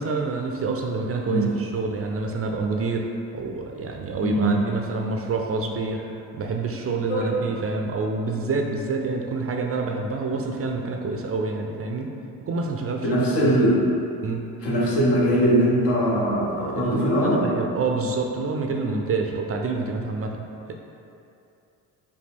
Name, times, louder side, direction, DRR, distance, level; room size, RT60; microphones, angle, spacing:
voice 1, 0.0-6.0 6.3-12.1 12.5-13.7 14.2-14.4 16.6-20.7, right 3 dB, 35° right, 2 dB, 0.4 m, -27 dB
voice 2, 1.2-1.5 4.2-4.6 7.1-7.4 13.0-13.8 14.6-17.4, equal, 75° left, -5 dB, 1.2 m, -21 dB
5.2 x 2.2 x 3.5 m, 2.7 s
supercardioid pair, 75°, 41 cm